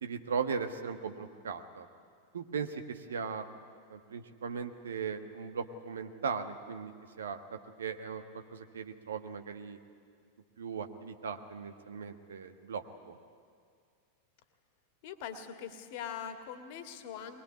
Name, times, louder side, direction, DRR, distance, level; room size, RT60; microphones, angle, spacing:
voice 1, 0.0-1.9 2.3-3.5 3.9-6.9 7.2-8.2 8.5-9.8 10.6-13.2, right 6 dB, 65° right, 8 dB, 1.4 m, -38 dB
voice 2, 15.0-17.4, left 8 dB, 50° left, 8 dB, 1.9 m, -42 dB
21.5 x 21.0 x 9.5 m, 2.1 s
figure-of-eight pair, 90°, 0 cm